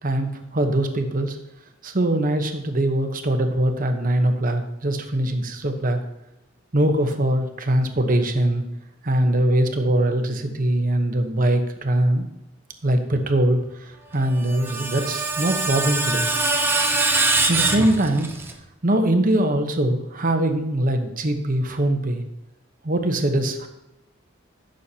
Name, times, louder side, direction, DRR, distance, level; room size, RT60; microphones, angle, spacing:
voice 1, 0.0-1.4 1.8-6.0 6.7-8.6 9.0-12.3 12.8-16.2 17.5-18.3 18.8-22.2 22.8-23.7, right 1 dB, 45° right, 6 dB, 1.0 m, -22 dB
Screech, 14.2-18.5, right 3 dB, 10° right, 0.7 m, -23 dB
15.0 x 6.5 x 2.9 m, 0.93 s
head